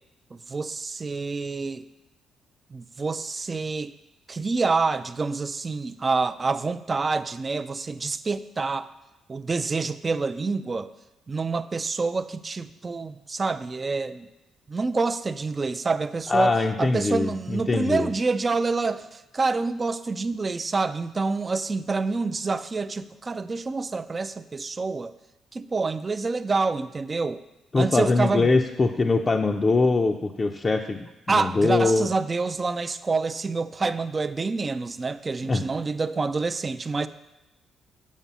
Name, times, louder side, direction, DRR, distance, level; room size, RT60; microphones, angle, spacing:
voice 1, 0.3-1.9 2.7-3.9 4.3-8.9 9.3-10.9 11.3-14.3 14.7-25.1 25.5-27.4 27.8-28.5 31.3-37.1, right 4 dB, 30° right, 12 dB, 0.3 m, -27 dB
voice 2, 16.3-18.1 27.7-32.1 35.4-35.6, left 3 dB, 30° left, 2 dB, 0.5 m, -22 dB
7.3 x 5.2 x 6.8 m, 0.98 s
cardioid pair, 90°, 0 cm